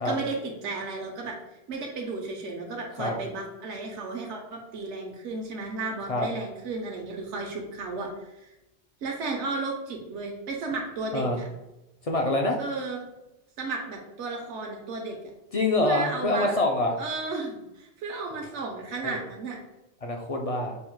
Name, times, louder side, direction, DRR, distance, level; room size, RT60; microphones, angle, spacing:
voice 1, 0.0-1.4 1.7-8.1 9.0-11.5 12.6-13.0 13.6-15.1 15.8-16.5 17.0-19.6, right 3 dB, 80° right, 0 dB, 1.0 m, -33 dB
voice 2, 12.0-12.6 15.5-16.9 19.0-19.2 20.0-20.8, left 2 dB, 50° left, 2 dB, 0.4 m, -25 dB
5.3 x 2.1 x 4.5 m, 0.96 s
omnidirectional pair, 1.2 m